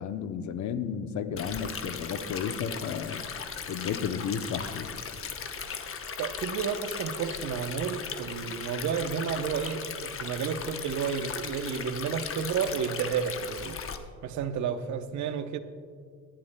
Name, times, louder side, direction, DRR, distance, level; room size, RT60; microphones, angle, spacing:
voice 1, 0.0-3.2 3.7-4.9, left 7 dB, 70° left, 10 dB, 0.8 m, -33 dB
Stream, 1.4-14.0, left 6 dB, 45° left, 0.9 m, -37 dB
voice 2, 6.2-13.8 14.2-15.6, right 7 dB, 70° right, 10 dB, 0.8 m, -31 dB
18.5 x 11.5 x 2.2 m, 2.1 s
cardioid pair, 90°, 30 cm